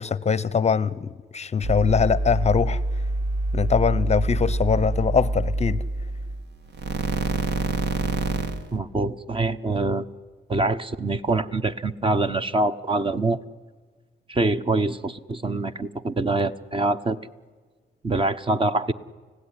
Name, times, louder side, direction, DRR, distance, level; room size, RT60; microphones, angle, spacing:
voice 1, 0.0-2.8 3.5-5.8, left 6 dB, 35° left, 19 dB, 0.7 m, -22 dB
sound 1, 1.6-6.4 6.7-8.8, right 2 dB, 60° right, 1.8 m, -26 dB
voice 2, 8.7-10.1 10.5-13.4 14.3-17.2 18.0-18.9, right 2 dB, 25° right, 11 dB, 1.0 m, -24 dB
30.0 x 16.5 x 10.0 m, 1.4 s
cardioid pair, 90°, 20 cm